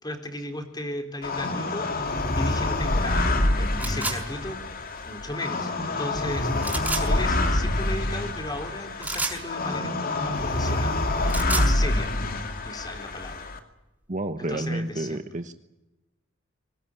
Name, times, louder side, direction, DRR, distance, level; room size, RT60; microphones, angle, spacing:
voice 1, 0.0-4.6 5.0-11.0 11.5-12.1 12.6-13.4 14.4-15.2, left 1 dB, 20° left, 5 dB, 4.0 m, -36 dB
sound 1, 1.2-13.6, left 2 dB, 45° left, 2.5 m, -26 dB
sound 2, 3.8-4.2 6.6-7.1 9.0-9.4 11.1-11.7, right 3 dB, 10° right, 5.7 m, -29 dB
voice 2, 14.1-15.5, right 1 dB, 40° right, 9 dB, 1.2 m, -30 dB
25.0 x 19.0 x 9.9 m, 1.0 s
head